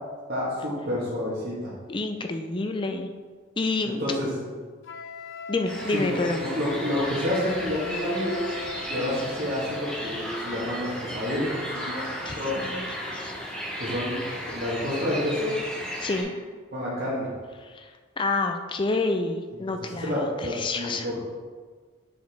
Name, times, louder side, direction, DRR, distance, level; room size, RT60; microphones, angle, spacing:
voice 1, 0.3-1.7 3.9-4.3 5.9-8.4 8.9-12.0 12.4-12.6 13.8-14.2 14.5-15.5 16.7-17.3 19.6-21.2, left 1 dB, 50° right, -8 dB, 1.4 m, -29 dB
voice 2, 1.9-3.1 3.6-4.0 5.5-6.4 12.3-13.3 16.0-16.3 17.6-21.1, left 3 dB, 25° left, 6 dB, 0.4 m, -29 dB
Wind instrument woodwind instrument, 4.8-10.3, left 3 dB, 70° left, 0.7 m, -39 dB
sound 1, 5.6-16.2, equal, 5° left, 0.9 m, -35 dB
6.5 x 4.8 x 3.4 m, 1.5 s
head